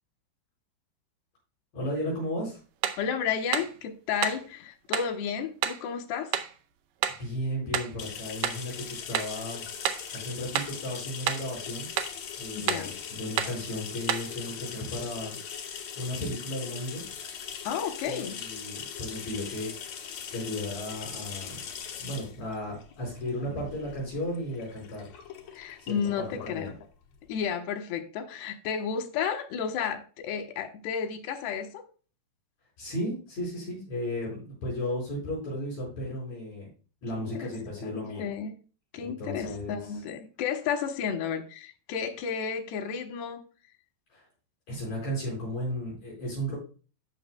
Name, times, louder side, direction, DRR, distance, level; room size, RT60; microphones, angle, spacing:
voice 1, 1.7-2.6 7.2-9.6 10.1-11.9 12.4-15.4 16.0-17.0 18.1-19.7 20.3-21.6 22.0-25.1 25.8-26.7 32.8-36.7 37.0-38.3 39.0-40.0 44.1-44.2 44.7-46.6, equal, 45° left, -5 dB, 6.1 m, -34 dB
sound 1, 2.8-3.1 3.5-3.8 4.2-4.5 4.9-5.1 5.6-5.8 6.3-6.5 7.0-7.3 7.7-8.0 8.4-8.7 9.1-9.4 9.8-10.1 10.5-10.8 11.3-11.5 12.0-12.2 12.7-12.9 13.4-13.6 14.1-14.3, right 10 dB, 85° right, 2.0 m, -30 dB
voice 2, 3.0-6.3 12.5-13.0 17.6-18.4 25.6-26.7 27.3-31.8 37.1-37.5 37.8-38.5 38.9-43.4, left 7 dB, 90° left, 6 dB, 3.1 m, -32 dB
Water Flows Into Sink, 8.0-27.4, left 8 dB, 65° left, 1.8 m, -41 dB
16.0 x 6.1 x 2.2 m, 0.35 s
omnidirectional pair, 4.5 m